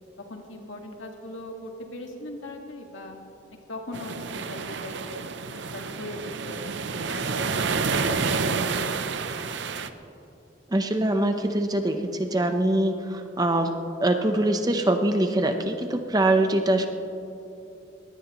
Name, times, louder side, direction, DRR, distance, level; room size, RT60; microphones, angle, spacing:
voice 1, 0.3-3.2 3.7-5.2 5.5-6.8 7.0-7.7 8.1-9.3, left 1 dB, 80° left, 2 dB, 1.9 m, -39 dB
sound 1, 3.9-9.9, right 4 dB, 65° right, 0.7 m, -29 dB
voice 2, 10.7-13.7 14.0-16.9, right 1 dB, 20° right, 6 dB, 0.8 m, -23 dB
21.5 x 18.0 x 3.1 m, 2.7 s
head